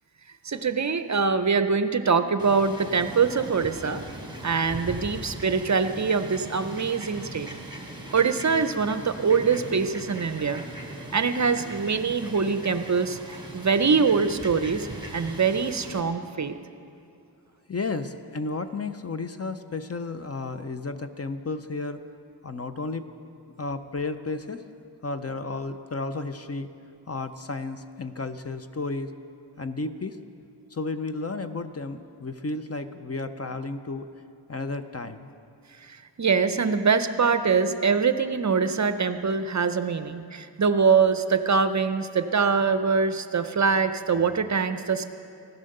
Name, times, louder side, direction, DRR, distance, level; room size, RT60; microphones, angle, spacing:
voice 1, 0.4-4.0 4.4-7.5 8.1-10.6 11.1-13.2 13.5-14.9 15.1-16.5 35.8-45.1, right 5 dB, 40° right, 10 dB, 0.6 m, -24 dB
Fowl, 2.4-16.0, right 2 dB, 10° right, 2.8 m, -40 dB
voice 2, 17.7-22.0 22.4-23.1 23.6-24.6 25.0-26.7 27.1-29.1 29.6-30.2 30.7-34.1 34.5-35.3, left 3 dB, 35° left, 9 dB, 0.6 m, -32 dB
16.0 x 11.5 x 6.6 m, 2.5 s
wide cardioid pair, 105°, 44 cm